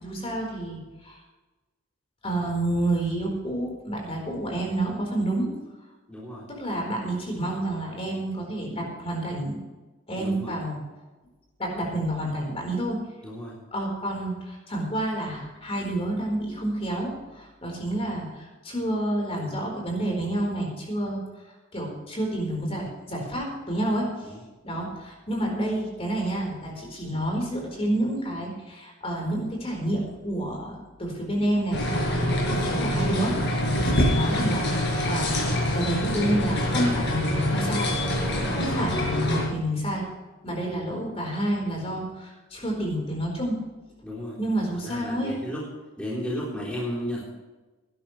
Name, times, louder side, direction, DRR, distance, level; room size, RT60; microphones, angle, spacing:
voice 1, 0.0-1.2 2.2-5.5 6.5-9.6 10.1-10.8 11.6-13.0 13.7-21.2 21.7-24.1 24.6-35.4 35.7-37.9 38.4-40.1 40.4-43.6 44.4-45.4, right 1 dB, 25° left, 0 dB, 4.3 m, -29 dB
voice 2, 6.1-6.4 10.2-10.6 13.2-13.5 24.3-24.4 38.5-38.8 44.0-44.4 44.8-45.6 46.0-47.2, equal, 5° left, -7 dB, 3.6 m, -33 dB
sound 1, 31.7-39.5, left 1 dB, 55° left, 5.0 m, -25 dB
20.0 x 11.5 x 3.3 m, 1.2 s
head